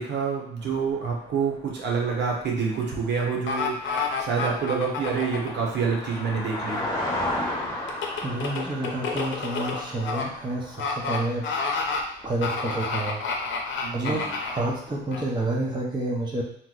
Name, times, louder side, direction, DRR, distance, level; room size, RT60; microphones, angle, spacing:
voice 1, 0.0-6.8 13.8-14.3, right 5 dB, 60° right, -1 dB, 0.9 m, -27 dB
sound 1, 0.6-13.5 13.8-14.0 14.2-14.3, left 1 dB, 20° left, 0.9 m, -36 dB
sound 2, 3.5-5.5 7.9-10.2 10.8-11.2 11.4-12.0 12.4-14.6 15.1-15.2, left 4 dB, 70° left, 0.6 m, -29 dB
voice 2, 8.2-11.5 12.2-13.2 13.9-16.4, right 2 dB, 20° right, -2 dB, 0.7 m, -29 dB
3.0 x 2.0 x 3.8 m, 0.67 s
cardioid pair, 90°, 20 cm